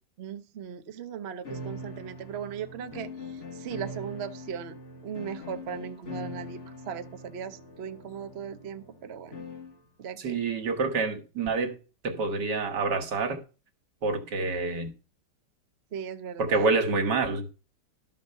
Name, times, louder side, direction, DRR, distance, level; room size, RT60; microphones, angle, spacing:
voice 1, 0.2-4.8 5.0-9.4 10.0-10.4 15.9-16.7, right 8 dB, 50° right, 0.9 m, -38 dB
sound 1, 1.4-9.8, left 1 dB, 45° left, 1.9 m, -42 dB
voice 2, 10.2-11.8 12.0-13.4 14.0-14.9 16.4-17.5, right 3 dB, 75° right, 2.1 m, -27 dB
12.0 x 5.4 x 6.7 m
omnidirectional pair, 1.9 m